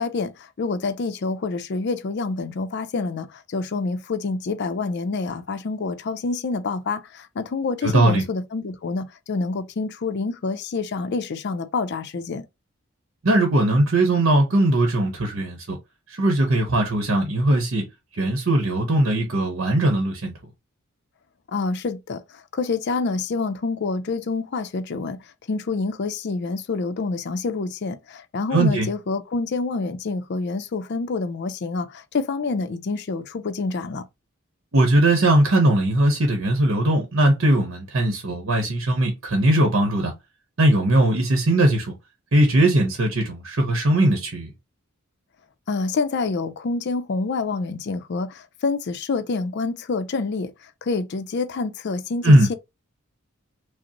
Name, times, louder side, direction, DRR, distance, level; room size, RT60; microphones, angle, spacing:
voice 1, 0.0-12.5 21.5-25.2 25.5-34.1 45.7-52.5, left 4 dB, 55° left, 0.5 m, -27 dB
voice 2, 7.8-8.2 13.2-15.8 16.1-17.8 18.1-20.3 28.5-28.9 34.7-40.1 40.6-41.9 42.3-44.5 52.2-52.5, right 1 dB, 65° right, 0.9 m, -19 dB
5.1 x 2.0 x 2.9 m
head